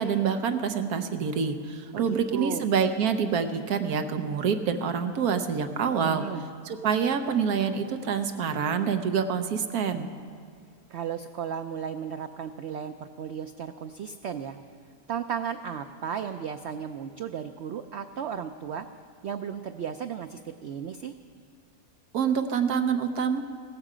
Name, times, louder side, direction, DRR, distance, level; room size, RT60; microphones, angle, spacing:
voice 1, 0.0-6.2 6.6-10.1 22.1-23.4, right 6 dB, 70° right, 8 dB, 1.2 m, -26 dB
voice 2, 1.9-2.6 6.0-6.4 10.9-14.6 15.1-18.9 19.2-21.1, right 8 dB, 90° right, 8 dB, 0.5 m, -35 dB
17.0 x 14.0 x 5.0 m, 2.3 s
omnidirectional pair, 1.7 m